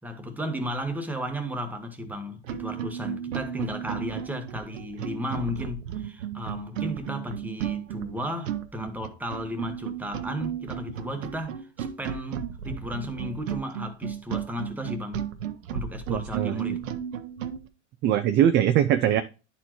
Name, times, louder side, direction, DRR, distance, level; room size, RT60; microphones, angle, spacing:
voice 1, 0.0-15.2 15.7-16.8, equal, 5° right, 1.1 m, -34 dB
sound 1, 2.0-2.1 2.4-17.6, right 9 dB, 80° right, 0.9 m, -34 dB
voice 2, 16.1-16.6 18.0-19.2, right 10 dB, 30° right, 0.4 m, -22 dB
11.0 x 4.3 x 2.9 m
hypercardioid pair, 115°, 39 cm